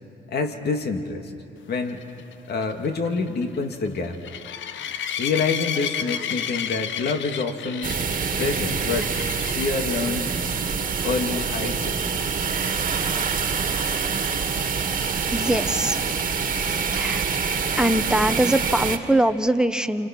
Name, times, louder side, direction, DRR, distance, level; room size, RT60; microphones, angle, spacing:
voice 1, 0.3-1.3 1.7-2.0 2.5-4.2 5.2-7.9 8.4-9.1 9.5-10.3 11.0-12.0, left 4 dB, 55° left, 5 dB, 2.2 m, -27 dB
sound 1, 1.9-9.8 10.4-10.7 11.0-11.1 11.5-11.6 15.2-15.3, left 9 dB, 70° left, 0.8 m, -32 dB
sound 2, 7.8-19.0, right 5 dB, 45° right, 1.8 m, -26 dB
voice 2, 15.3-16.0 16.6-17.2 17.8-20.1, right 1 dB, 5° right, 9 dB, 1.0 m, -22 dB
29.0 x 28.5 x 6.1 m, 2.5 s
cardioid pair, 90°, 20 cm